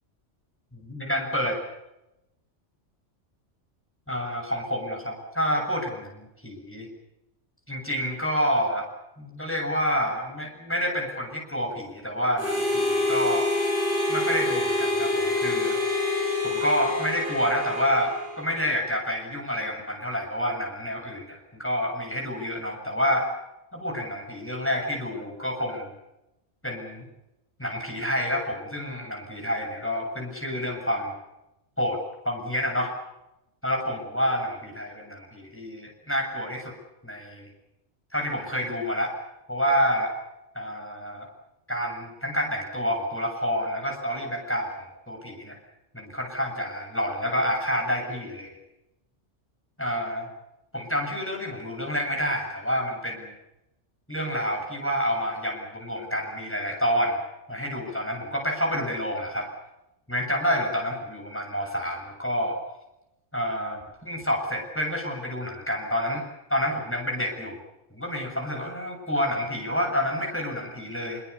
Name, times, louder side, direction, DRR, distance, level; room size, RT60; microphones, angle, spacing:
voice 1, 0.7-1.5 4.1-6.9 7.7-8.9 9.2-13.5 14.1-15.8 16.4-23.3 23.7-25.9 26.6-27.1 27.6-31.1 31.8-32.9 33.6-36.7 37.0-37.5 38.1-39.1 39.5-40.1 40.5-41.3 41.7-45.6 45.9-48.5 49.8-50.3 50.7-53.3 54.1-57.2 57.5-59.5 60.1-62.6 63.3-66.2 66.5-67.6 67.9-71.2, equal, 10° left, 1 dB, 7.4 m, -28 dB
Harmonica, 12.4-18.8, left 2 dB, 45° left, 8.3 m, -26 dB
25.0 x 24.5 x 6.9 m, 0.90 s
omnidirectional pair, 1.2 m